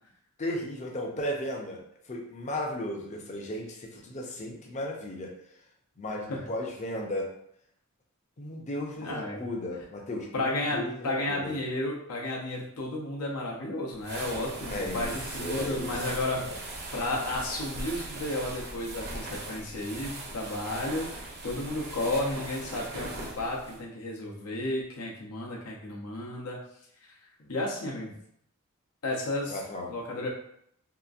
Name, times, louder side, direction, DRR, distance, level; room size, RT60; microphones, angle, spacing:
voice 1, 0.4-1.8 2.1-5.3 6.0-7.3 8.4-11.6 14.7-15.1 15.4-16.0 16.4-16.6 27.4-27.5 29.5-29.9, left 1 dB, 30° left, 1 dB, 0.5 m, -35 dB
voice 2, 9.0-9.4 10.3-16.5 16.9-23.1 23.4-26.6 27.5-28.1 29.0-29.6 29.9-30.3, left 1 dB, 90° left, -2 dB, 0.8 m, -32 dB
sound 1, 14.0-23.8, right 2 dB, 50° right, 0.7 m, -39 dB
2.8 x 2.5 x 2.4 m, 0.71 s
head